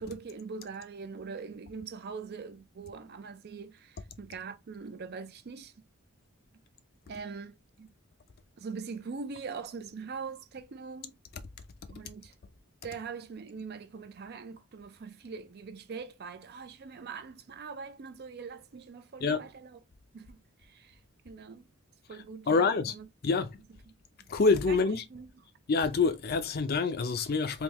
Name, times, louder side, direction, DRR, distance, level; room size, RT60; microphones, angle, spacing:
voice 1, 0.0-5.7 7.1-7.9 8.6-11.2 11.9-12.3 12.8-19.8 20.1-21.0 21.2-21.7 22.1-23.1 24.7-24.8 25.1-25.3, right 5 dB, 50° right, 0.4 m, -42 dB
voice 2, 22.5-22.9 23.2-23.6 24.3-25.0 25.7-27.6, left 4 dB, 45° left, 0.5 m, -26 dB
3.5 x 2.6 x 3.0 m
head